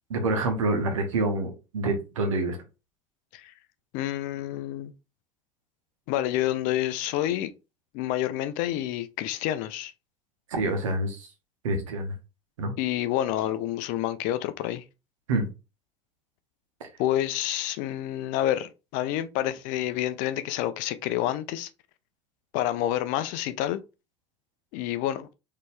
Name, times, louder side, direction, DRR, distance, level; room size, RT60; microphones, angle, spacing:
voice 1, 0.1-2.6 10.5-11.3 11.6-12.1 12.6-12.7 15.3-15.5 16.8-16.9, right 2 dB, 75° right, 1.3 m, -27 dB
voice 2, 3.9-4.9 6.1-7.5 7.9-9.9 12.8-14.8 17.0-21.7 22.5-23.8 24.7-25.3, left 13 dB, 55° left, 0.5 m, -28 dB
4.1 x 3.1 x 3.3 m
figure-of-eight pair, 65°, 17 cm